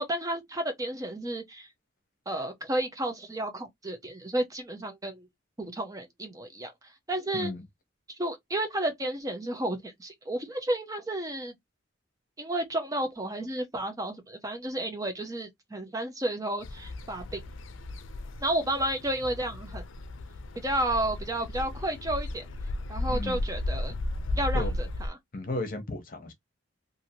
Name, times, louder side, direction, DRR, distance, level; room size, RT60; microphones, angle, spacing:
voice 1, 0.0-1.7 2.3-5.3 5.6-6.7 7.1-7.5 8.2-11.5 12.4-17.4 18.4-19.8 20.6-22.4 22.9-23.9 24.4-25.2, right 1 dB, 20° right, 0.6 m, -32 dB
sound 1, 16.6-25.1, left 1 dB, 80° left, 0.4 m, -34 dB
voice 2, 25.3-26.3, left 1 dB, 45° left, 0.9 m, -34 dB
2.7 x 2.6 x 2.7 m
head